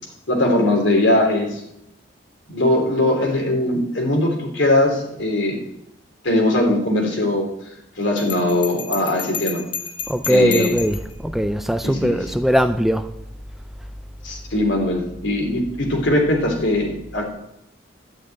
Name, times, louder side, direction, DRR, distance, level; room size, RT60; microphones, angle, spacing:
voice 1, 0.3-1.6 2.5-5.6 6.2-7.5 8.0-9.6 10.3-10.8 11.8-12.2 14.2-17.3, left 1 dB, 80° left, 3.1 m, -20 dB
Bell, 8.2-11.1, left 7 dB, 25° left, 1.2 m, -31 dB
voice 2, 10.1-13.1, equal, ahead, 0.4 m, -20 dB
12.5 x 6.3 x 9.0 m
head